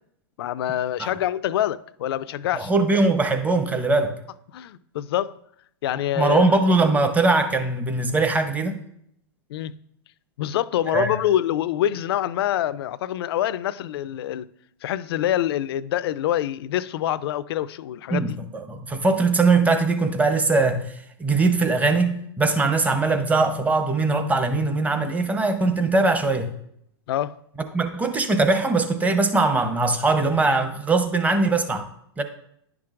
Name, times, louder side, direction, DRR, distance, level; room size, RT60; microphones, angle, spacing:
voice 1, 0.4-2.7 4.5-5.3 5.8-6.6 9.5-9.7 10.4-14.5 14.8-18.3 27.1-27.4, left 12 dB, 65° left, 0.4 m, -25 dB
voice 2, 2.6-4.1 6.2-8.8 10.9-11.2 18.1-20.8 21.2-26.5 27.7-31.9 32.2-32.3, right 3 dB, 10° right, 0.8 m, -21 dB
10.0 x 5.9 x 2.5 m
hypercardioid pair, 115°, 14 cm